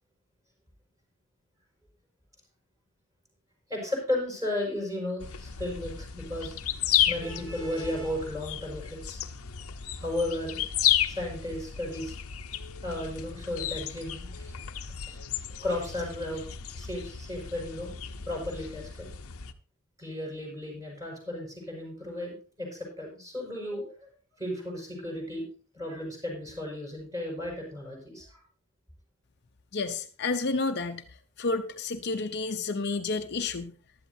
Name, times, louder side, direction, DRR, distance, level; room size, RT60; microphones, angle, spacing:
voice 1, 3.7-6.6 7.1-9.2 10.0-10.6 11.1-12.1 12.8-14.6 15.1-15.2 15.6-16.4 16.8-17.9 18.3-19.1 20.0-24.1 24.4-25.4 25.7-28.4, left 1 dB, 15° right, -1 dB, 5.8 m, -34 dB
sound 1, 5.2-19.5, left 10 dB, 85° left, 0.8 m, -33 dB
voice 2, 29.7-31.0 31.4-33.7, left 3 dB, 50° left, 6 dB, 0.7 m, -30 dB
15.5 x 12.0 x 2.7 m, 0.41 s
head